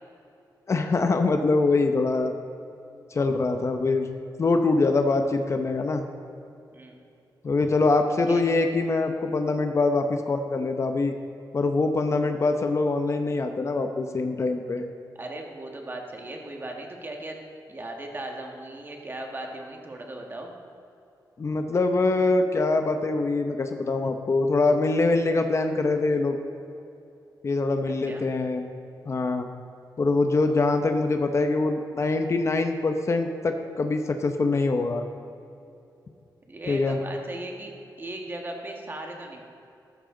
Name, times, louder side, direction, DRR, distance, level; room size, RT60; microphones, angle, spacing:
voice 1, 0.7-2.3 3.1-4.1 4.4-6.0 7.4-11.1 11.5-14.8 21.4-26.4 27.4-28.6 29.1-29.5 30.0-35.0 36.7-37.0, left 3 dB, 40° left, 6 dB, 0.8 m, -24 dB
voice 2, 8.3-8.6 15.2-17.4 17.7-20.6 27.9-28.3 36.5-37.7 38.0-39.4, right 1 dB, 30° right, 1 dB, 1.7 m, -37 dB
13.5 x 13.0 x 3.9 m, 2.7 s
wide cardioid pair, 135°, 8 cm